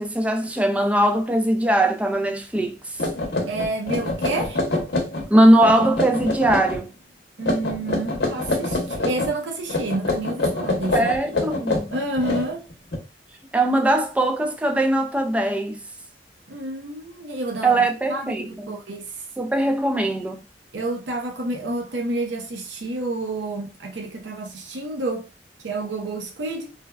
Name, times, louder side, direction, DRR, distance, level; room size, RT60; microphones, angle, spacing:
voice 1, 0.0-3.0 5.3-6.9 10.9-12.0 13.5-15.8 17.6-18.8 19.4-20.4, right 1 dB, 10° right, 0.3 m, -20 dB
sound 1, 2.6-2.7 3.0-5.3 5.6-6.8 7.4-9.3 9.7-13.0, left 2 dB, 65° left, 0.8 m, -26 dB
voice 2, 3.5-4.6 7.4-11.1 11.9-12.6 16.5-19.1 20.7-25.3 25.6-26.7, right 2 dB, 80° right, 0.6 m, -29 dB
3.3 x 2.1 x 2.2 m
head